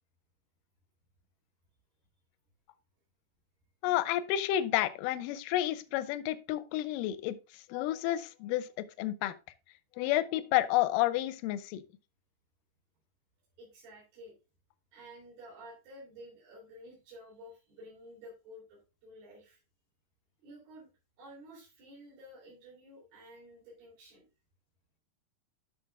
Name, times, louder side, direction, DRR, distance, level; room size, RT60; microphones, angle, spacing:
voice 1, 3.8-9.3 10.0-11.8, left 13 dB, 80° left, 2.1 m, -30 dB
voice 2, 13.6-14.3 14.9-19.6 20.4-20.9 21.2-24.3, equal, 70° right, 5.1 m, -52 dB
12.5 x 6.1 x 2.4 m
omnidirectional pair, 4.3 m